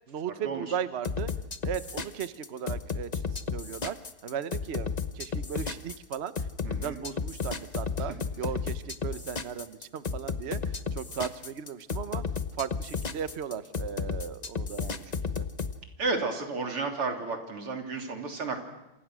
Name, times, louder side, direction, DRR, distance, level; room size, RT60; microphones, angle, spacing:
voice 1, 0.1-1.3 1.6-6.3 6.8-12.2 12.6-15.5, right 8 dB, 50° right, 12 dB, 0.8 m, -36 dB
sound 1, 1.0-15.7, left 5 dB, 60° left, 0.4 m, -33 dB
voice 2, 6.6-7.0 14.8-15.1 16.0-18.6, right 3 dB, 80° right, 2 dB, 4.3 m, -32 dB
27.5 x 27.5 x 6.3 m, 0.96 s
omnidirectional pair, 2.4 m